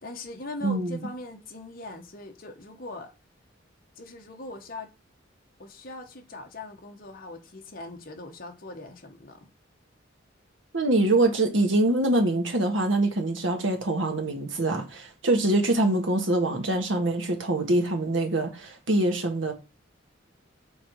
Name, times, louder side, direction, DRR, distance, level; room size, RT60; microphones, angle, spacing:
voice 1, 0.0-3.1 3.9-4.9 5.6-9.5, left 2 dB, 50° left, 1.3 m, -41 dB
voice 2, 0.6-1.0 10.7-19.5, right 2 dB, 80° right, 1.6 m, -24 dB
7.1 x 3.9 x 4.6 m
head